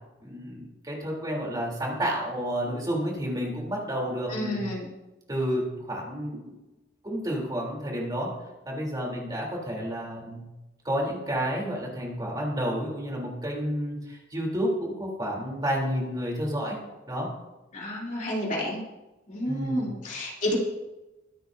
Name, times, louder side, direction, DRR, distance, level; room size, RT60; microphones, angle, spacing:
voice 1, 0.2-4.6 5.3-6.6 7.0-8.3 8.7-10.4 10.8-16.8 17.1-17.3 19.5-19.8, equal, 20° right, -2 dB, 3.5 m, -30 dB
voice 2, 4.3-4.9 17.7-18.8 19.3-20.5, equal, 45° left, -4 dB, 3.1 m, -30 dB
23.0 x 9.3 x 2.7 m, 1.0 s
head